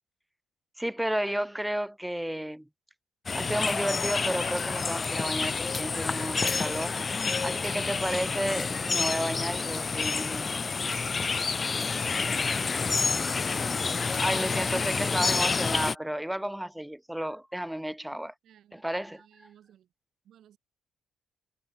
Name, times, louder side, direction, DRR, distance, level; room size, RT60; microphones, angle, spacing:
voice 1, 0.8-2.7 3.3-10.6 14.2-18.3 18.7-19.2, right 1 dB, 5° right, 1.3 m, -32 dB
sound 1, 3.3-16.0, left 4 dB, 35° left, 1.0 m, -29 dB
voice 2, 7.7-8.1 11.5-13.9 18.4-19.9 20.2-20.6, right 10 dB, 70° right, 6.8 m, -55 dB
cardioid pair, 90°, 0 cm